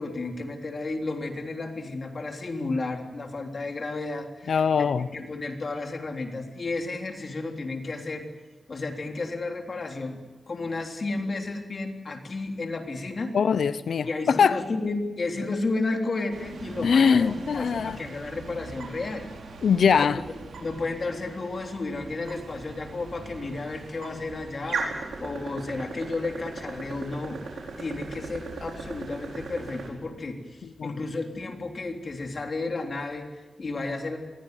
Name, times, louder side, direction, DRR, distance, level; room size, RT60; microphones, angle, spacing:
voice 1, 0.0-8.3 8.7-13.3 14.1-17.3 17.5-19.3 20.0-20.1 20.6-27.4 27.8-34.2, left 3 dB, 50° left, 3 dB, 3.5 m, -32 dB
voice 2, 4.5-5.1 13.3-14.6 16.8-18.0 19.6-20.2 30.8-31.0, left 6 dB, 80° left, 14 dB, 0.7 m, -22 dB
sound 1, 16.3-29.9, right 4 dB, 90° right, 4.6 m, -39 dB
21.5 x 17.0 x 9.4 m, 1.2 s
cardioid pair, 70°, 0 cm